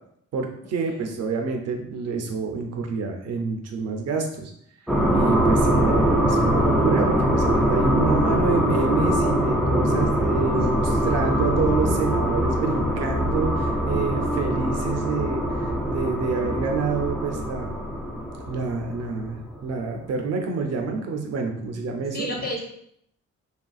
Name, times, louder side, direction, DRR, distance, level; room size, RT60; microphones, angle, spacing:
voice 1, 0.3-4.5 5.1-17.8 18.5-22.5, right 4 dB, 55° right, 3 dB, 0.5 m, -27 dB
voice 2, 0.8-1.1 10.5-10.7 22.1-22.6, left 1 dB, 30° left, -1 dB, 0.8 m, -31 dB
sound 1, 4.9-19.6, equal, ahead, 0.4 m, -23 dB
2.9 x 2.5 x 2.3 m, 0.71 s
cardioid pair, 90°, 30 cm